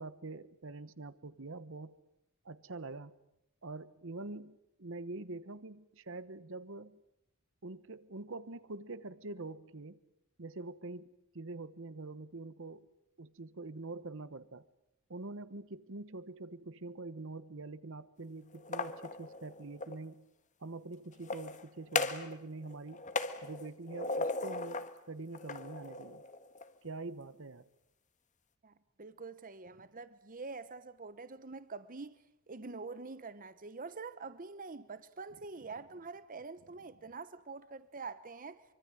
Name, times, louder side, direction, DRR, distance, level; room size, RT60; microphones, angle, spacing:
voice 1, 0.0-2.0 2.4-3.2 3.6-7.0 7.6-10.0 10.4-11.1 11.3-12.9 13.2-14.7 15.1-20.3 20.6-23.0 23.4-26.2 26.8-27.7, right 3 dB, 60° right, 1.1 m, -45 dB
sound 1, 18.5-20.0 21.1-22.4 22.6-24.9 25.3-26.7, left 3 dB, 35° left, 1.6 m, -37 dB
voice 2, 28.6-32.2 32.5-38.6, right 4 dB, 40° right, 1.0 m, -46 dB
25.5 x 25.0 x 9.1 m
head